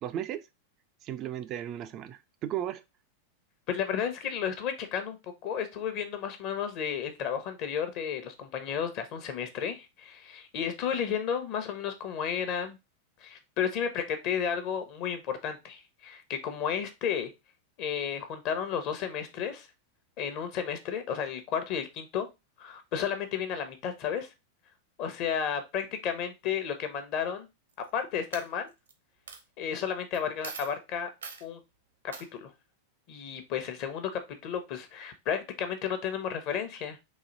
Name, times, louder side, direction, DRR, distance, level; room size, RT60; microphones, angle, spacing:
voice 1, 0.0-0.5 1.0-2.8, right 11 dB, 35° right, 0.3 m, -35 dB
voice 2, 3.7-12.8 13.2-17.3 17.8-19.7 20.2-22.3 22.6-24.3 25.0-27.5 27.9-28.7 29.6-31.1 31.4-31.6 32.3-32.5 33.1-37.0, left 8 dB, 40° left, 0.9 m, -32 dB
Coin (dropping), 27.7-28.0 28.3-28.9 29.3-29.4 30.1-30.2 30.4-30.7 31.2-31.4 32.1-32.3, right 6 dB, 70° right, 0.7 m, -41 dB
4.1 x 2.8 x 3.9 m
figure-of-eight pair, 90°, 0 cm